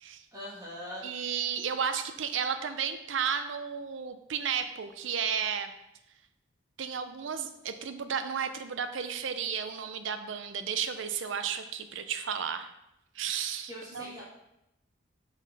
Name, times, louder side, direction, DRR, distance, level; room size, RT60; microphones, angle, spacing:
voice 1, 0.3-1.1 13.7-14.2, equal, 20° right, -6 dB, 1.4 m, -41 dB
voice 2, 1.0-5.7 6.8-12.7 13.1-14.1, right 7 dB, 75° right, 9 dB, 0.5 m, -33 dB
6.3 x 4.0 x 4.1 m, 0.86 s
head